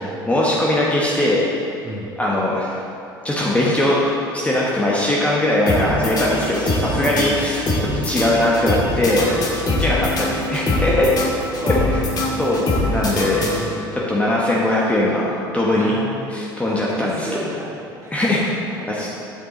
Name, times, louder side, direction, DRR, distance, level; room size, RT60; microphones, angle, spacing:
voice 1, 0.0-1.5 2.2-2.8 3.2-7.6 7.9-9.3 9.8-11.1 12.4-13.4 14.1-15.9 16.3-17.3 18.1-18.4 18.9-19.1, left 1 dB, 10° left, -5 dB, 1.2 m, -20 dB
voice 2, 1.8-2.1 5.7-6.2 6.8-7.5 9.1-9.6 10.6-11.3 11.6-12.6 13.0-14.0 15.8-16.3 16.7-18.1 18.4-18.5 18.8-19.1, right 1 dB, 25° right, -1 dB, 1.6 m, -33 dB
sound 1, 5.7-14.0, left 2 dB, 35° left, 1.7 m, -23 dB
7.9 x 7.3 x 3.9 m, 2.7 s
figure-of-eight pair, 70°, 12 cm